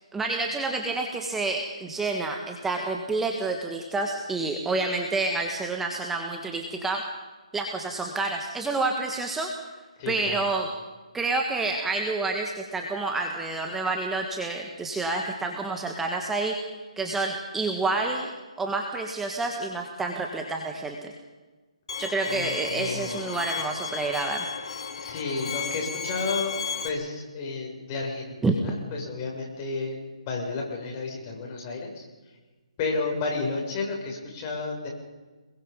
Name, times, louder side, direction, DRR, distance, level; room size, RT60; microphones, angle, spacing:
voice 1, 0.1-7.0 7.5-9.5 10.1-10.7 11.1-16.6 17.0-18.3 18.6-21.1 22.0-24.5 28.4-28.5, right 3 dB, 5° right, 2 dB, 1.5 m, -28 dB
voice 2, 10.0-10.5 22.2-23.2 25.0-26.6 26.8-30.0 30.3-32.0 32.8-34.9, left 3 dB, 30° left, 0 dB, 6.6 m, -32 dB
Bowed string instrument, 21.9-26.9, left 6 dB, 60° left, 2.4 m, -34 dB
29.0 x 21.5 x 5.4 m, 1.3 s
hypercardioid pair, 150°, 4 cm